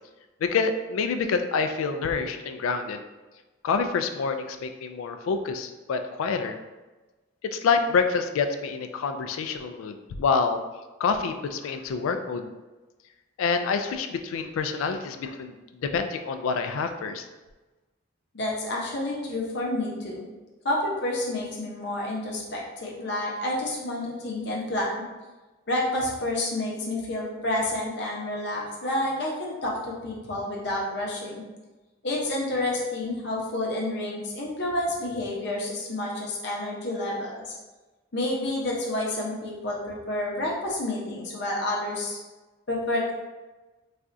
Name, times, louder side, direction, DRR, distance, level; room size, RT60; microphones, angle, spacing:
voice 1, 0.4-3.0 3.6-6.6 7.4-10.6 11.0-12.5 13.4-15.5 15.8-17.3, left 5 dB, 80° left, 7 dB, 0.3 m, -27 dB
voice 2, 18.3-20.3 20.6-24.9 25.7-31.4 32.0-37.5 38.1-42.2 42.7-43.1, left 1 dB, 55° left, -3 dB, 0.7 m, -29 dB
4.1 x 2.3 x 2.5 m, 1.2 s
head